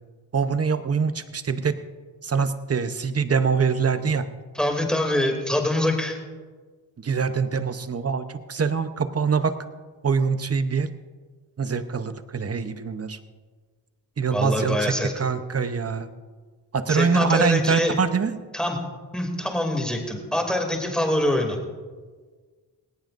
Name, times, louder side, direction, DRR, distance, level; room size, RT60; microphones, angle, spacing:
voice 1, 0.3-1.8 2.2-4.3 7.0-9.5 10.0-10.9 11.6-13.2 14.2-16.1 16.7-18.3, right 5 dB, 35° right, 10 dB, 0.9 m, -24 dB
voice 2, 4.5-6.2 14.3-15.1 16.9-18.0 18.5-18.8 19.1-21.6, left 1 dB, ahead, 2 dB, 2.7 m, -24 dB
18.5 x 17.5 x 2.6 m, 1.4 s
cardioid pair, 85°, 41 cm